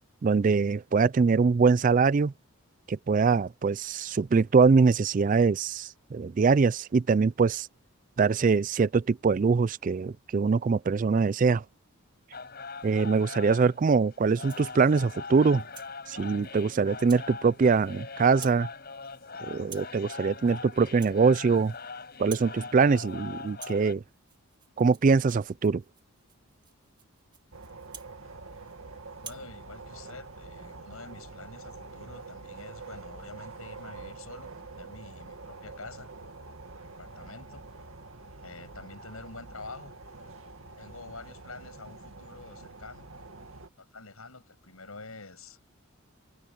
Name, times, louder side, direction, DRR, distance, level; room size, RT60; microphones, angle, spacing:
voice 1, 0.2-2.3 2.9-7.7 8.2-11.6 12.8-15.6 16.1-18.7 19.4-21.7 22.2-24.0 24.8-25.8, right 5 dB, 40° right, 0.3 m, -23 dB
sound 1, 12.3-23.9, left 4 dB, 45° left, 5.4 m, -42 dB
Rattle (instrument), 14.3-14.7 15.2-15.9 16.4-16.6 17.1-17.3 17.6-18.0 18.3-18.7 18.9-19.3 19.6-20.0 20.3-20.6 20.9-21.9 22.1-22.6 22.9-23.2 23.5-28.8 29.1-29.5, right 7 dB, 20° right, 2.0 m, -49 dB
sound 2, 27.5-43.7, right 3 dB, 75° right, 2.2 m, -46 dB
voice 2, 29.2-36.1 37.0-37.6 38.4-39.9 40.8-43.1 43.8-45.6, left 3 dB, 80° left, 6.8 m, -47 dB
head